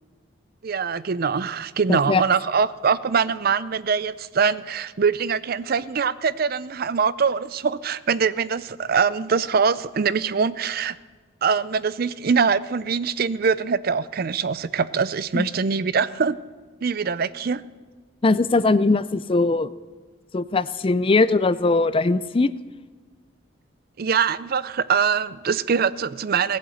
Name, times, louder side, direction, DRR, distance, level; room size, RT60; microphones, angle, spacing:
voice 1, 0.6-11.0 11.4-16.4 16.8-17.6 24.0-26.6, right 6 dB, 50° right, 17 dB, 0.5 m, -23 dB
voice 2, 1.9-2.2 15.3-15.5 18.2-19.7 20.3-22.5, left 3 dB, 30° left, 15 dB, 0.4 m, -20 dB
16.5 x 8.7 x 7.9 m, 1.4 s
head